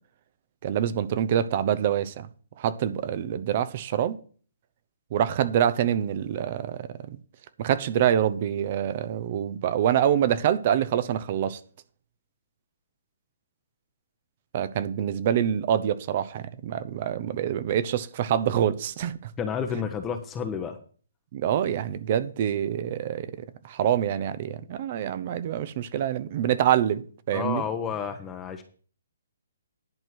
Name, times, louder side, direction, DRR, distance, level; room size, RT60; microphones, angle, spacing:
voice 1, 0.6-2.3 2.6-4.2 5.1-7.2 7.6-11.6 14.5-19.3 21.3-27.6, right 10 dB, 45° right, 0.8 m, -26 dB
voice 2, 19.4-20.8 27.3-28.6, left 7 dB, 20° left, 1.0 m, -30 dB
11.0 x 4.6 x 7.6 m
hypercardioid pair, 140°, 0 cm